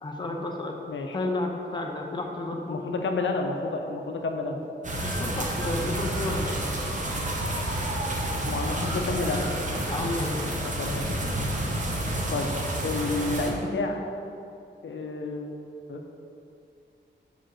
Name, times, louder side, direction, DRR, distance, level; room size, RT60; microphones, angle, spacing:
voice 1, 0.0-0.8 1.1-2.8 5.0-6.6 9.9-10.5, left 2 dB, 25° left, 1 dB, 0.6 m, -31 dB
voice 2, 0.9-1.3 2.7-4.6 8.4-9.4 10.6-11.2 12.3-12.5 12.8-14.0 14.8-15.5 15.9-16.0, left 3 dB, 80° left, 3 dB, 0.7 m, -30 dB
sound 1, 4.8-13.5, right 1 dB, 40° right, 0.9 m, -29 dB
5.1 x 5.0 x 6.3 m, 2.6 s
wide cardioid pair, 170°, 20 cm